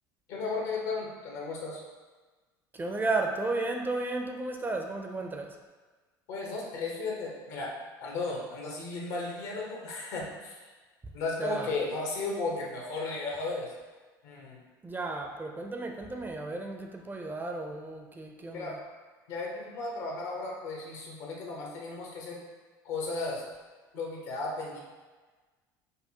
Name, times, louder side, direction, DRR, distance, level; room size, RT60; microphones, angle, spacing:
voice 1, 0.3-1.8 6.3-10.6 11.1-13.7 14.2-14.6 18.5-18.8 19.3-22.4 22.8-23.5 23.9-24.8, left 3 dB, 70° left, -2 dB, 0.9 m, -35 dB
voice 2, 2.7-5.6 11.0-11.1 11.4-11.7 14.8-18.8, right 2 dB, 20° right, 2 dB, 0.4 m, -33 dB
5.3 x 2.1 x 2.8 m, 1.3 s
hypercardioid pair, 70°, 11 cm